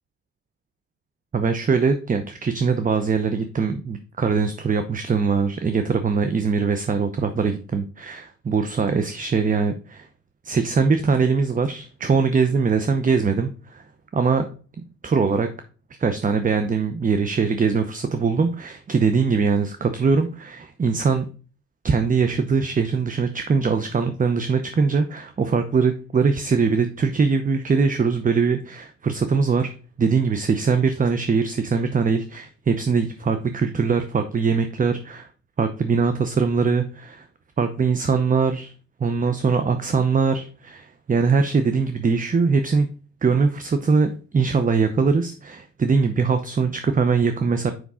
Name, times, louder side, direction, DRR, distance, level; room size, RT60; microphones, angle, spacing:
voice 1, 1.3-10.1 10.4-13.8 14.1-14.5 15.0-15.5 16.0-21.3 21.8-29.7 30.0-35.3 35.6-37.2 37.6-38.7 39.0-42.9 43.2-47.7, right 5 dB, 25° right, 9 dB, 0.7 m, -22 dB
6.1 x 5.3 x 3.7 m, 0.38 s
cardioid pair, 90°, 30 cm